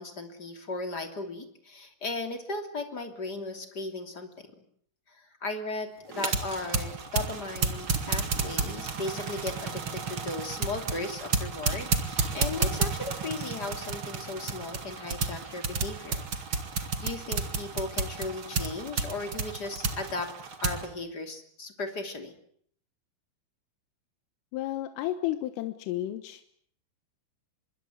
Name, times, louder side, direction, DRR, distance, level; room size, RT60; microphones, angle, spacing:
voice 1, 0.0-4.5 5.1-16.3 16.8-20.3 20.6-22.3, left 3 dB, 25° left, 6 dB, 2.6 m, -36 dB
sound 1, 6.1-20.9, right 4 dB, 50° right, 1.6 m, -32 dB
voice 2, 24.5-26.5, left 14 dB, 85° left, 9 dB, 3.9 m, -32 dB
25.5 x 22.5 x 8.1 m, 0.64 s
omnidirectional pair, 5.7 m